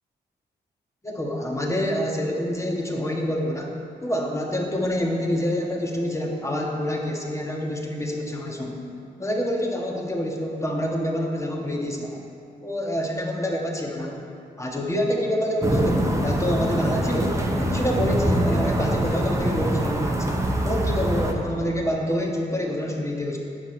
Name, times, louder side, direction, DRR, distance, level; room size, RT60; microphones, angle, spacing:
voice 1, 1.0-8.8 9.2-12.2 12.6-14.2 14.6-23.4, equal, 15° left, 0 dB, 1.4 m, -27 dB
sound 1, 15.6-21.3, right 1 dB, 15° right, 1.0 m, -24 dB
8.5 x 5.9 x 4.4 m, 2.5 s
supercardioid pair, 45°, 18 cm